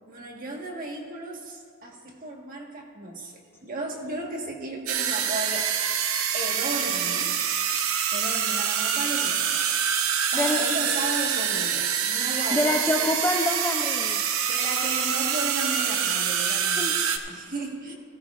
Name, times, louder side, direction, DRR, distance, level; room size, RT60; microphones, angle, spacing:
voice 1, 0.1-5.7 6.3-7.3 8.1-10.0 10.3-12.9 14.4-17.9, right 2 dB, 40° right, 0 dB, 1.3 m, -35 dB
sound 1, 4.9-17.2, right 8 dB, 65° right, 0.7 m, -26 dB
voice 2, 12.5-14.2 16.8-17.0, left 1 dB, 10° left, 3 dB, 0.4 m, -26 dB
14.5 x 14.0 x 2.4 m, 2.1 s
head